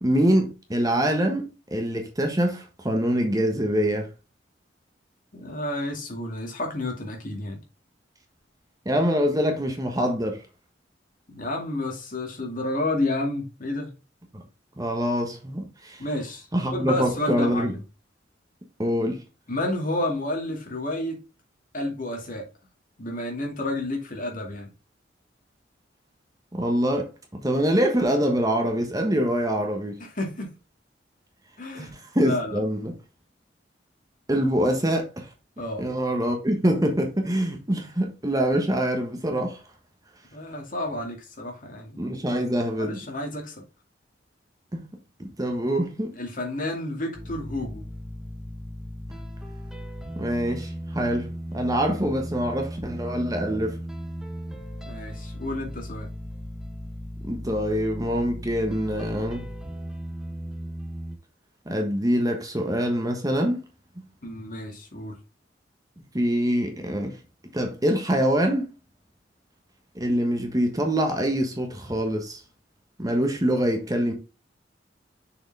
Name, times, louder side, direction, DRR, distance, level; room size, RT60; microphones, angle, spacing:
voice 1, 0.0-4.1 8.8-10.4 14.8-16.0 16.5-17.7 18.8-19.2 26.5-30.0 31.7-33.0 34.3-35.3 35.8-39.6 42.0-43.0 44.7-44.8 45.2-46.2 50.2-51.3 51.5-53.8 57.2-59.5 61.7-63.6 66.1-67.2 67.5-68.7 69.9-72.4 73.0-74.1, equal, 20° right, 1.3 m, -25 dB
voice 2, 5.3-7.6 11.3-13.9 16.0-16.5 16.7-17.8 19.5-21.2 21.7-22.5 23.0-24.7 30.0-30.5 31.6-31.9 32.2-32.6 35.6-35.9 40.3-42.0 42.8-43.6 46.2-47.9 54.9-56.1 64.2-65.2, left 1 dB, 45° left, 2.2 m, -30 dB
sound 1, 47.1-61.2, equal, 5° right, 1.0 m, -36 dB
6.5 x 5.0 x 3.4 m
head